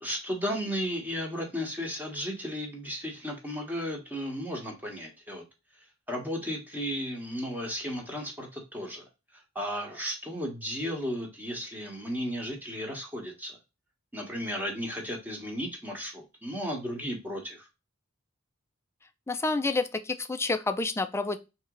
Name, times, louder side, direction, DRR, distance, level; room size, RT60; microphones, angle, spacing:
voice 1, 0.0-5.4 6.1-9.0 9.3-13.6 14.1-17.7, equal, 10° right, 0 dB, 1.3 m, -34 dB
voice 2, 19.3-21.4, left 3 dB, 15° left, 10 dB, 0.4 m, -29 dB
4.1 x 3.0 x 3.7 m, 0.27 s
head